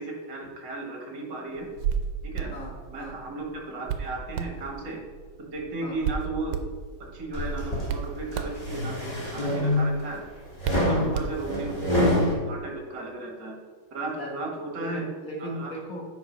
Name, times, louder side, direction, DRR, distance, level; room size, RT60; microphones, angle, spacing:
voice 1, 0.0-1.7 2.3-2.6 2.9-5.0 5.4-6.6 7.0-10.2 10.7-13.5 13.9-15.0 15.4-15.7, right 2 dB, 60° right, 0 dB, 2.1 m, -35 dB
Hands, 1.6-11.8, right 7 dB, 85° right, 1.5 m, -35 dB
voice 2, 2.5-3.2 5.8-6.0 10.9-11.2 14.2-14.3 14.8-16.1, equal, 45° left, -1 dB, 1.7 m, -37 dB
sound 1, 7.3-7.9 8.4-10.0 10.6-12.3, left 1 dB, 20° left, 1.6 m, -25 dB
7.9 x 5.0 x 5.3 m, 1.5 s
omnidirectional pair, 2.3 m